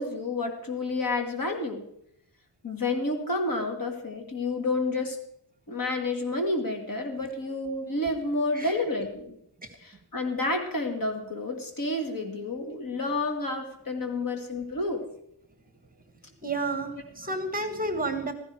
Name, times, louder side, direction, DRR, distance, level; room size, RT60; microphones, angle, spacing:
voice 1, 0.0-1.9 2.6-5.2 5.7-9.4 9.8-15.1 17.2-17.3, left 2 dB, 50° left, 4 dB, 2.3 m, -30 dB
voice 2, 16.4-18.3, right 2 dB, 20° right, 7 dB, 1.4 m, -30 dB
15.5 x 14.0 x 4.8 m, 0.72 s
wide cardioid pair, 165°, 43 cm